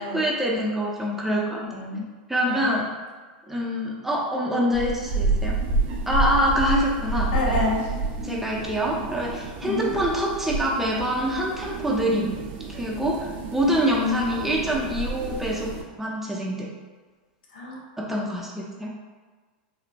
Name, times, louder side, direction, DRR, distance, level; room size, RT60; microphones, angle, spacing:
voice 1, 0.0-1.6 2.3-2.9 3.5-5.6 6.1-7.6 8.2-12.3 12.8-16.7 18.0-18.9, equal, 5° right, -4 dB, 0.6 m, -25 dB
voice 2, 1.6-2.0 2.4-2.7 7.3-7.9 9.6-9.9 17.5-17.8, left 2 dB, 70° left, -1 dB, 0.8 m, -28 dB
sound 1, 4.7-15.8, right 3 dB, 50° right, 0.5 m, -29 dB
4.1 x 2.1 x 2.5 m, 1.4 s
hypercardioid pair, 105°, 5 cm